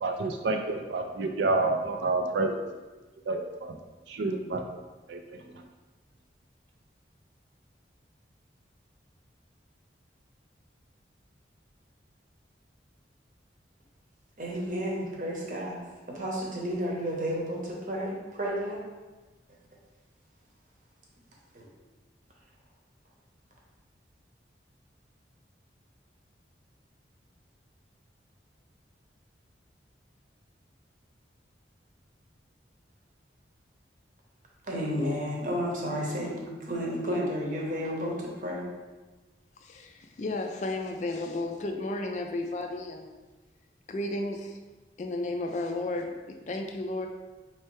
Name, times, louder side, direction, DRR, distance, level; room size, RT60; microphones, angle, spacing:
voice 1, 0.0-2.6 3.3-3.8 4.1-4.7 5.1-5.4, right 3 dB, 75° right, 4 dB, 0.4 m, -29 dB
voice 2, 14.4-15.8 16.1-18.8 21.5-21.7 34.7-38.7, equal, 45° right, -2 dB, 0.9 m, -32 dB
voice 3, 39.6-43.1 43.9-44.6 45.0-47.1, left 2 dB, 40° left, 3 dB, 0.3 m, -33 dB
4.5 x 3.2 x 3.1 m, 1.2 s
head